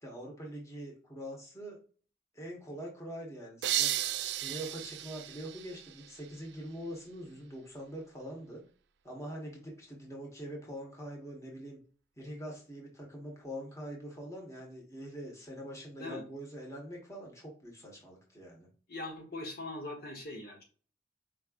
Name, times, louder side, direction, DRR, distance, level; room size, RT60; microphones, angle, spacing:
voice 1, 0.0-1.8 2.3-3.9 4.4-8.6 9.0-11.8 12.2-18.7, equal, 15° left, -1 dB, 1.4 m, -44 dB
sound 1, 3.6-6.4, right 12 dB, 75° right, 0.3 m, -34 dB
voice 2, 18.9-20.6, left 2 dB, 55° left, 1 dB, 1.2 m, -41 dB
4.8 x 3.2 x 2.5 m, 0.39 s
head